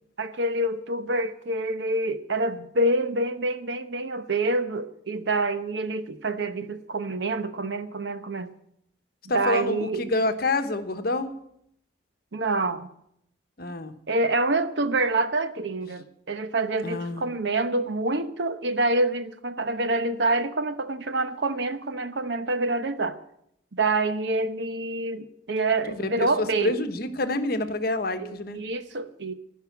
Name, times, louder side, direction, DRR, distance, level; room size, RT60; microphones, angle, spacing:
voice 1, 0.2-8.5 9.3-10.0 12.3-12.9 14.1-23.2 23.7-26.7 28.2-29.3, right 2 dB, 65° right, 11 dB, 0.9 m, -27 dB
voice 2, 9.3-11.3 13.6-13.9 16.8-17.3 25.9-28.6, left 2 dB, 50° left, 9 dB, 1.0 m, -27 dB
15.5 x 5.6 x 9.2 m, 0.74 s
head